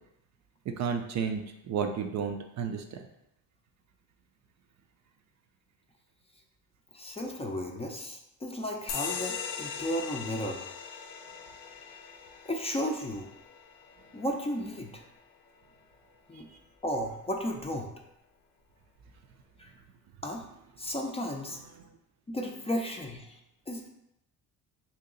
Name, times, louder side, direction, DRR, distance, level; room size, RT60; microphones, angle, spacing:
voice 1, 0.7-3.0 16.3-16.4, right 6 dB, 50° right, 5 dB, 0.4 m, -32 dB
voice 2, 6.9-10.6 12.4-13.3 14.1-15.0 16.3-16.5 16.8-17.9 19.6-19.7 20.2-20.4 20.8-21.6 22.3-23.4 23.7-23.9, equal, 15° left, 1 dB, 0.5 m, -34 dB
sound 1, 8.9-15.9, left 6 dB, 85° left, 0.7 m, -40 dB
2.9 x 2.8 x 3.8 m, 0.83 s
cardioid pair, 95°, 37 cm